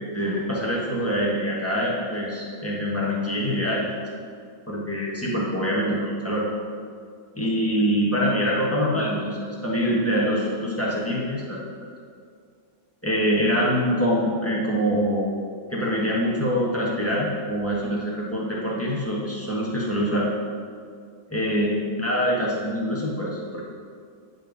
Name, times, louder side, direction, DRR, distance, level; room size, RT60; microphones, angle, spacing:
voice 1, 0.1-3.8 4.7-6.4 7.4-11.6 13.0-15.4 15.7-20.3 21.3-21.7 22.0-23.6, equal, 10° left, -6 dB, 1.0 m, -24 dB
10.5 x 3.6 x 5.3 m, 2.2 s
omnidirectional pair, 2.1 m